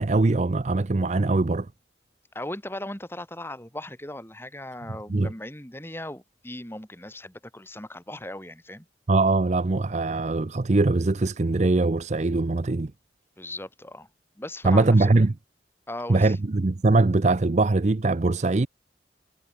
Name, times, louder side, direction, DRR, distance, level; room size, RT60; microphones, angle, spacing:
voice 1, 0.0-1.7 5.1-5.3 9.1-12.9 14.6-15.3 16.1-18.7, right 3 dB, 40° right, 0.6 m, -22 dB
voice 2, 2.3-8.9 13.4-14.1 14.4-15.2 15.9-16.4, left 1 dB, 15° left, 6.3 m, -38 dB
head